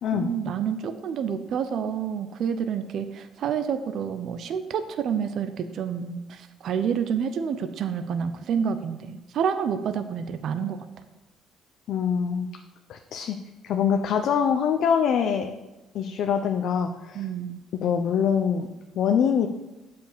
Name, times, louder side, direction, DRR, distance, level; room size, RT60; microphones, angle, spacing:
voice 1, 0.1-10.8 17.1-17.6, right 7 dB, 60° right, 9 dB, 0.6 m, -28 dB
voice 2, 11.9-12.5 12.9-13.4 13.6-15.5 15.9-17.2 17.8-19.5, left 7 dB, 65° left, 5 dB, 0.6 m, -24 dB
8.0 x 5.2 x 6.7 m, 1.1 s
cardioid pair, 100°, 0 cm